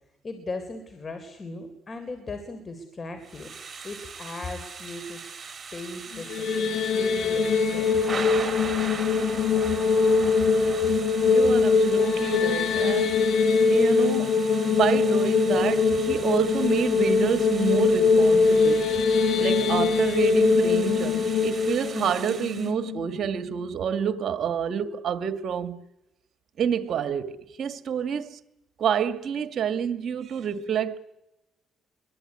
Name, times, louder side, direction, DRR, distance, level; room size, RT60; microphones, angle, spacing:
voice 1, 0.2-3.5 3.8-5.4 5.7-8.0, left 3 dB, 35° left, 3.9 m, -38 dB
Thunder / Rain, 3.2-22.7, right 5 dB, 30° right, 4.4 m, -40 dB
sound 1, 6.1-23.3, left 4 dB, 75° left, 1.5 m, -22 dB
voice 2, 11.2-13.2 13.7-14.3 14.7-18.9 19.4-25.8 26.6-28.4 28.8-31.0, right 8 dB, 60° right, 1.9 m, -28 dB
23.5 x 23.0 x 9.8 m
cardioid pair, 90°, 0 cm